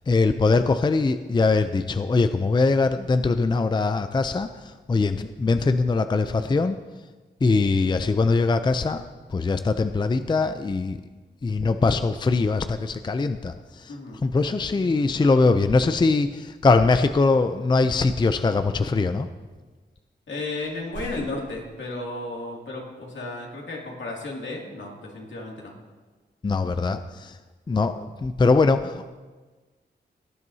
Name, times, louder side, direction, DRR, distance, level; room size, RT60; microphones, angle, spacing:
voice 1, 0.0-6.8 7.4-9.0 9.3-11.0 11.4-13.9 14.2-19.3 26.4-27.4 27.7-29.1, left 3 dB, 25° left, 9 dB, 0.4 m, -22 dB
voice 2, 13.9-14.2 20.3-25.7, left 2 dB, 80° left, -2 dB, 2.5 m, -34 dB
sound 1, 17.5-18.0 18.9-19.7 20.0-20.1 20.4-22.3, right 1 dB, 90° right, 3.8 m, -45 dB
17.5 x 10.5 x 2.8 m, 1.3 s
wide cardioid pair, 100°, 19 cm